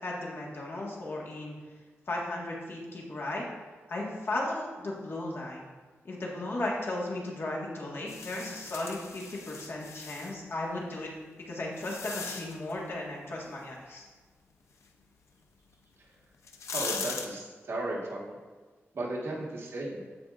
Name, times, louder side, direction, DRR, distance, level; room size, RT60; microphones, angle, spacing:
voice 1, 0.0-1.5 2.1-3.4 3.9-5.7 6.0-11.1 11.4-14.0, left 2 dB, 55° left, -3 dB, 1.6 m, -35 dB
sound 1, 8.1-10.4 11.1-12.7 15.7-15.8 16.3-17.3, left 5 dB, 90° left, 0.6 m, -39 dB
voice 2, 16.7-18.3 18.9-20.0, right 2 dB, 65° right, -3 dB, 1.5 m, -35 dB
14.5 x 4.8 x 2.5 m, 1.4 s
wide cardioid pair, 150°, 5 cm